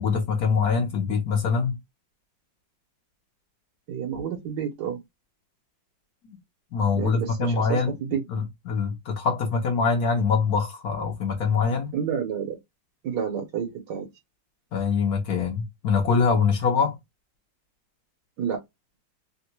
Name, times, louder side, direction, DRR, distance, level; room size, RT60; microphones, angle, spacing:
voice 1, 0.0-1.8 6.2-6.4 6.7-7.9 8.3-11.9 14.7-17.0, left 5 dB, 60° left, 1.1 m, -24 dB
voice 2, 3.9-5.0 6.9-8.2 11.9-12.6 13.0-14.1 18.4-18.6, right 8 dB, 70° right, 1.5 m, -29 dB
3.5 x 2.2 x 2.8 m
omnidirectional pair, 2.0 m